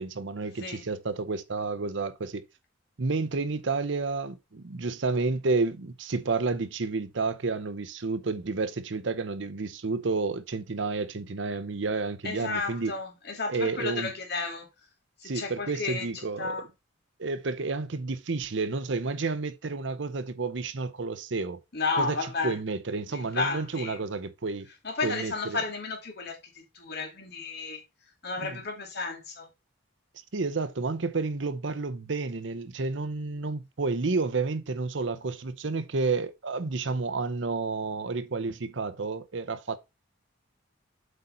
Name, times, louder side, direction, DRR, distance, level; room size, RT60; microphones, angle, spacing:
voice 1, 0.0-2.4 3.0-12.9 13.5-14.1 15.2-16.7 17.2-21.6 21.9-22.2 22.4-24.7 25.0-25.6 28.4-28.6 30.3-39.8, right 3 dB, 65° right, 0.7 m, -30 dB
voice 2, 12.2-14.7 15.2-16.1 16.4-16.7 21.7-22.6 23.1-24.0 24.8-27.8 28.2-29.5, left 4 dB, 55° left, 2.4 m, -32 dB
7.9 x 3.9 x 4.4 m
head